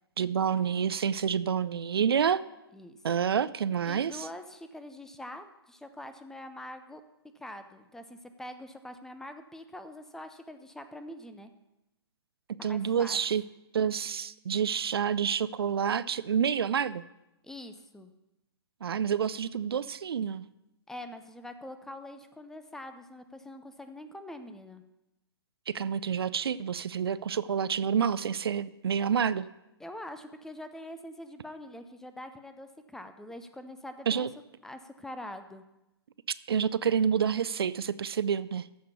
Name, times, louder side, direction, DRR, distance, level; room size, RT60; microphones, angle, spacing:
voice 1, 0.2-2.4 3.0-4.2 12.6-13.4 13.7-17.0 18.8-20.5 25.7-29.5 34.1-34.3 36.5-38.7, right 7 dB, 65° right, 16 dB, 0.4 m, -28 dB
voice 2, 3.9-7.0 7.4-11.5 12.6-13.2 17.4-18.1 20.9-24.8 29.8-34.3 34.6-35.6, left 1 dB, 5° left, 9 dB, 0.5 m, -44 dB
14.0 x 5.1 x 6.7 m, 0.93 s
figure-of-eight pair, 125°, 14 cm